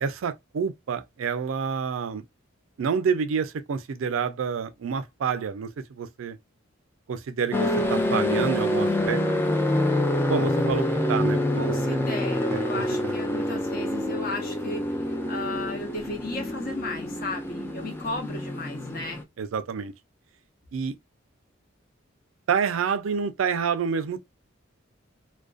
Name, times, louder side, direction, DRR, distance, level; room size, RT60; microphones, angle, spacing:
voice 1, 0.0-2.2 2.8-6.4 7.1-9.2 10.3-12.0 12.5-13.2 19.4-19.9 20.7-21.0 22.5-24.2, right 6 dB, 80° right, 0.4 m, -28 dB
sound 1, 7.5-19.2, left 1 dB, 10° left, 0.3 m, -26 dB
voice 2, 11.6-19.2, left 2 dB, 45° left, 0.7 m, -35 dB
2.4 x 2.2 x 2.3 m
head